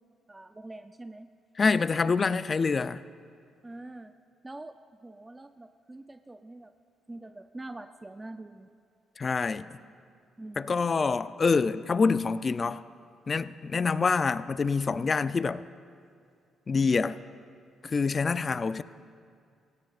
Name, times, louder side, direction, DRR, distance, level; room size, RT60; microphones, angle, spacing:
voice 1, 0.3-1.3 3.6-4.1 4.4-4.8 5.0-6.7 7.1-8.7 10.4-10.7, right 2 dB, 15° right, 0.5 m, -44 dB
voice 2, 1.6-3.0 9.2-9.8 10.6-12.8 13.3-15.7 16.7-17.2 17.8-18.8, left 4 dB, 35° left, 0.4 m, -26 dB
26.5 x 17.0 x 2.5 m
cardioid pair, 90°, 0 cm